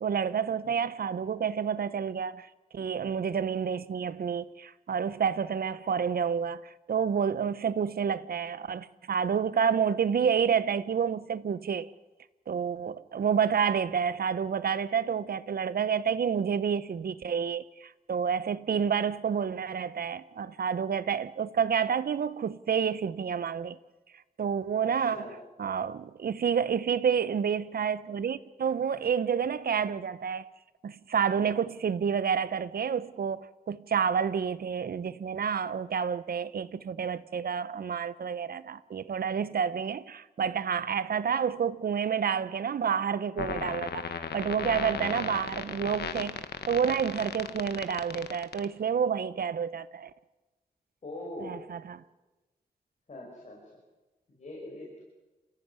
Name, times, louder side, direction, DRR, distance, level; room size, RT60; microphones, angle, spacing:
voice 1, 0.0-2.5 2.7-11.9 12.5-23.8 24.4-25.3 25.6-30.5 30.8-50.1 51.4-52.0, right 7 dB, 65° right, 0.9 m, -29 dB
voice 2, 24.8-25.4 51.0-51.6 53.1-53.6 54.4-55.0, left 1 dB, 45° left, 6.0 m, -42 dB
sound 1, 43.4-48.6, left 7 dB, 90° left, 1.3 m, -35 dB
29.0 x 15.0 x 9.6 m
wide cardioid pair, 135°, 16 cm